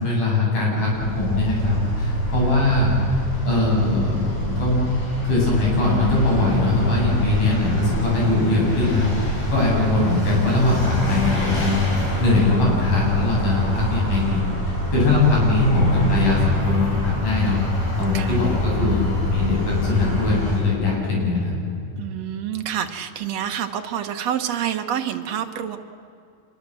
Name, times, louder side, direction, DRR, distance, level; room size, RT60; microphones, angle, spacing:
voice 1, 0.0-4.9 5.2-9.1 9.5-11.8 12.2-17.6 18.0-21.5, left 2 dB, 75° left, -3 dB, 9.4 m, -21 dB
Vehicle, 0.8-20.6, equal, 45° left, 7.4 m, -27 dB
sound 1, 12.9-15.3 15.8-18.4, left 4 dB, 35° right, 2.7 m, -35 dB
voice 2, 22.0-25.8, right 9 dB, 60° right, 7 dB, 2.1 m, -27 dB
26.0 x 23.0 x 7.7 m, 2.5 s
omnidirectional pair, 3.8 m